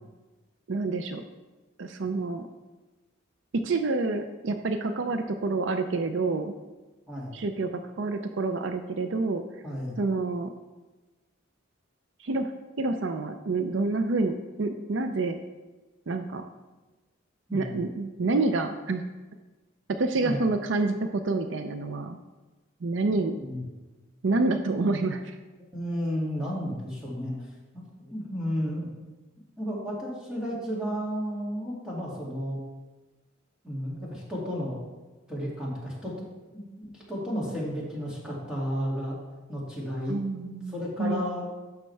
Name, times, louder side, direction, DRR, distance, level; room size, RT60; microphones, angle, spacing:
voice 1, 0.7-1.2 1.8-2.4 3.5-6.5 7.3-9.4 10.0-10.5 12.2-12.5 12.8-15.4 16.1-16.4 17.5-19.0 19.9-22.2 22.8-23.3 24.2-25.3 40.1-41.2, right 3 dB, 65° right, 7 dB, 0.5 m, -28 dB
voice 2, 7.1-7.4 9.6-10.0 17.5-17.8 20.2-20.4 23.4-23.6 25.7-27.5 27.7-28.9 29.6-32.6 33.6-34.8 35.3-36.1 36.5-39.2 39.5-41.5, equal, 5° right, -6 dB, 2.2 m, -33 dB
11.5 x 6.5 x 3.3 m, 1.2 s
head